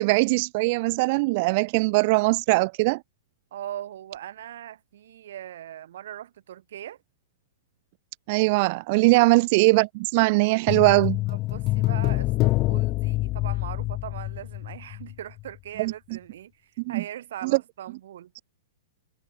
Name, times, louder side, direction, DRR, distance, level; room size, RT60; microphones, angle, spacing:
voice 1, 0.0-3.0 8.3-11.2 15.8-15.9 16.9-17.0 17.4-17.5, right 25 dB, 50° right, 0.6 m, -21 dB
voice 2, 3.5-7.0 9.1-9.3 11.3-18.3, right 11 dB, 65° right, 3.4 m, -40 dB
sound 1, 10.7-15.1 15.4-15.5, left 19 dB, 35° left, 1.1 m, -26 dB
hypercardioid pair, 120°, 0 cm